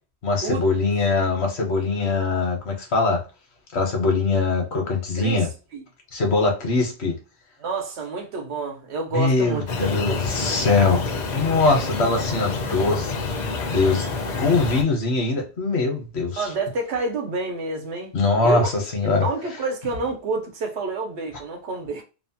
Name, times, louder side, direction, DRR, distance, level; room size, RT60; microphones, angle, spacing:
voice 1, 0.2-3.2 3.7-5.5 6.1-7.1 9.1-13.1 13.6-16.4 18.1-18.6 18.9-19.3, left 3 dB, 75° left, 1.2 m, -22 dB
voice 2, 7.6-10.2 16.4-18.1 18.4-18.7 19.0-22.0, right 3 dB, 85° right, 1.1 m, -28 dB
sound 1, 9.7-14.8, left 3 dB, 50° left, 0.6 m, -28 dB
2.9 x 2.1 x 2.7 m
omnidirectional pair, 1.1 m